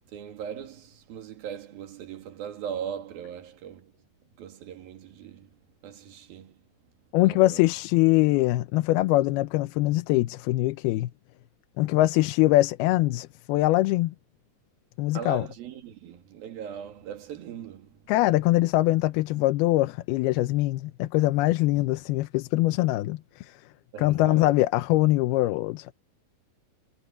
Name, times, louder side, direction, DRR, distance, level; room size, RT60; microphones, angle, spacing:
voice 1, 0.1-3.9 4.4-5.5 5.8-6.6 7.2-7.7 15.1-18.0 23.9-24.5, right 8 dB, 70° right, 4.0 m, -39 dB
voice 2, 7.1-11.1 11.8-14.1 15.0-15.5 18.1-23.5 24.0-25.9, left 17 dB, 90° left, 2.7 m, -23 dB
omnidirectional pair, 4.3 m